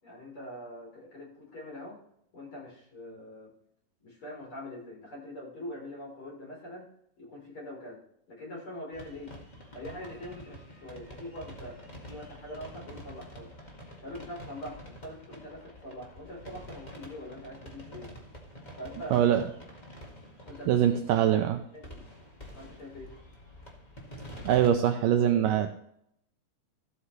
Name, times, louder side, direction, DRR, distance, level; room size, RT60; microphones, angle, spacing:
voice 1, 0.0-2.0 2.3-3.5 4.0-6.9 7.2-8.0 8.3-9.3 9.7-13.5 14.0-18.1 18.8-19.3 20.4-20.7 21.7-22.0 22.5-23.1, left 1 dB, 35° left, -3 dB, 4.5 m, -43 dB
sound 1, 8.9-24.7, equal, 85° left, 0.4 m, -47 dB
voice 2, 19.1-19.4 20.7-21.6 24.4-25.8, right 10 dB, 80° right, 5 dB, 2.0 m, -23 dB
14.5 x 8.1 x 3.2 m, 0.72 s
omnidirectional pair, 4.3 m